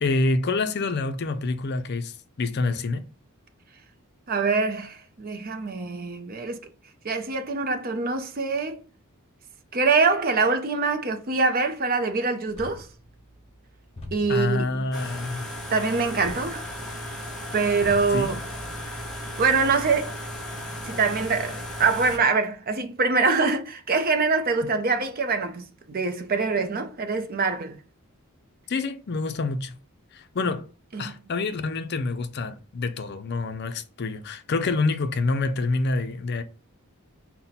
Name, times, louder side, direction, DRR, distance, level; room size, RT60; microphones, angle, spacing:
voice 1, 0.0-3.0 14.3-15.4 18.1-18.3 28.7-29.8 30.1-30.7 31.0-36.4, left 3 dB, 50° left, 0.5 m, -27 dB
voice 2, 4.3-6.6 7.0-8.8 9.7-12.9 14.1-14.9 15.7-16.9 17.5-18.4 19.4-20.2 20.8-27.8 30.9-31.1, right 4 dB, 40° right, 0.6 m, -24 dB
sound 1, 12.5-19.9, left 1 dB, 30° left, 1.0 m, -45 dB
sound 2, 14.9-22.2, left 1 dB, ahead, 0.8 m, -35 dB
5.6 x 2.2 x 4.0 m
head